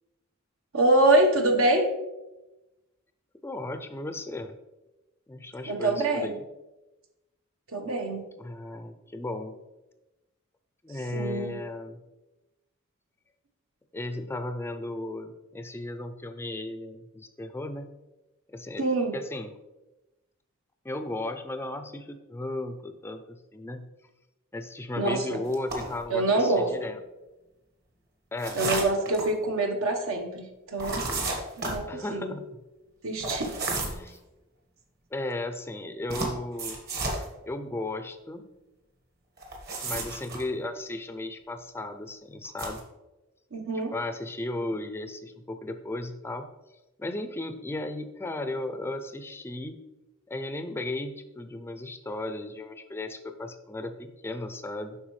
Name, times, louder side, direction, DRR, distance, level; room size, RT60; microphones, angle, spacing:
voice 1, 0.7-1.9 5.7-6.3 7.7-8.2 11.1-11.6 18.8-19.2 25.0-25.4 26.1-26.7 28.5-31.0 31.6-32.3 33.0-33.5 43.5-43.9, right 2 dB, 80° right, 3 dB, 1.1 m, -25 dB
voice 2, 3.4-4.6 5.3-6.4 8.4-9.6 10.8-12.0 13.9-17.9 18.5-18.8 19.1-19.5 20.8-23.9 24.5-27.0 28.3-28.6 31.9-32.5 33.8-34.2 35.1-36.8 37.4-38.4 39.8-42.8 43.9-46.5 47.0-49.8 50.3-55.0, left 2 dB, 10° left, 9 dB, 0.4 m, -35 dB
sound 1, 25.5-26.0 28.4-29.3 30.8-31.8 33.2-34.1 36.1-37.2 39.4-40.4 42.5-42.8, right 2 dB, 50° right, 1.5 m, -32 dB
8.0 x 5.5 x 3.1 m, 1.0 s
head